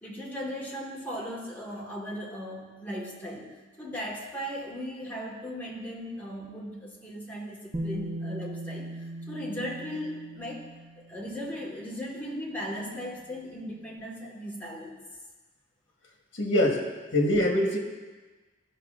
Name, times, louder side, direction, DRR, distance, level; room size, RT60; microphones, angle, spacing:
voice 1, 0.0-15.0, equal, 10° left, -4 dB, 1.4 m, -37 dB
Bass guitar, 7.7-11.7 12.8-12.9, equal, 25° right, 0.8 m, -38 dB
voice 2, 16.4-16.8 17.1-17.8, left 1 dB, 70° left, 0 dB, 1.1 m, -23 dB
14.5 x 5.6 x 2.4 m, 1.3 s
head